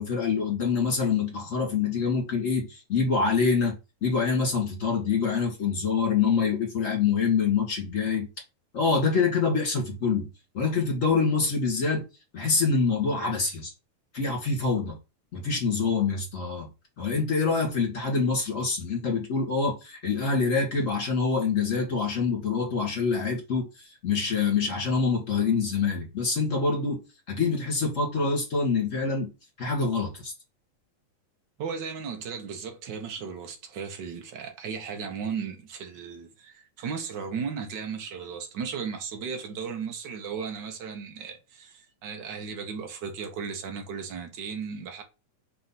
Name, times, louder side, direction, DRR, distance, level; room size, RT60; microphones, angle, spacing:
voice 1, 0.0-3.8 4.0-8.3 8.7-10.3 10.5-12.0 12.3-13.7 14.1-15.0 15.3-16.7 17.0-23.7 24.0-27.0 27.3-29.3 29.6-30.3, left 5 dB, 30° left, 1.8 m, -25 dB
voice 2, 31.6-45.0, right 6 dB, 85° right, 0.9 m, -35 dB
4.2 x 4.2 x 5.7 m
omnidirectional pair, 3.5 m